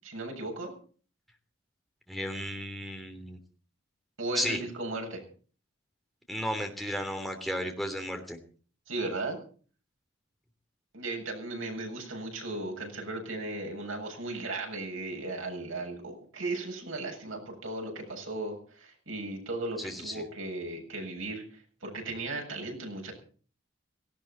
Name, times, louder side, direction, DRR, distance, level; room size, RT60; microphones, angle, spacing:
voice 1, 0.0-0.7 4.2-5.2 8.9-9.4 10.9-23.1, right 2 dB, 85° right, 2 dB, 7.7 m, -36 dB
voice 2, 2.1-3.4 4.3-4.6 6.3-8.4 19.8-20.2, equal, ahead, 3 dB, 3.1 m, -34 dB
18.0 x 17.0 x 4.5 m, 0.42 s
head